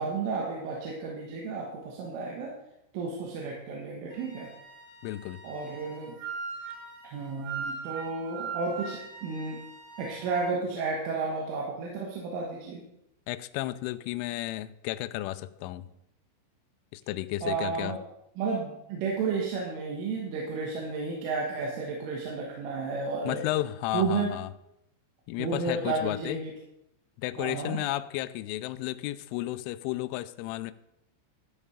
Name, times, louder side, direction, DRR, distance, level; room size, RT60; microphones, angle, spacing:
voice 1, 0.0-2.5 2.9-4.5 5.4-6.2 7.0-9.6 10.0-12.8 17.4-18.0 18.4-23.4 23.9-24.3 25.4-26.5 27.4-27.8, right 4 dB, 80° right, 3.9 m, -32 dB
Wind instrument woodwind instrument, 4.1-10.5, right 5 dB, 40° right, 3.7 m, -41 dB
voice 2, 5.0-5.4 13.3-15.9 16.9-18.0 23.3-24.5 25.3-26.4 27.2-30.7, left 15 dB, 85° left, 2.9 m, -33 dB
13.0 x 7.2 x 5.0 m
omnidirectional pair, 5.7 m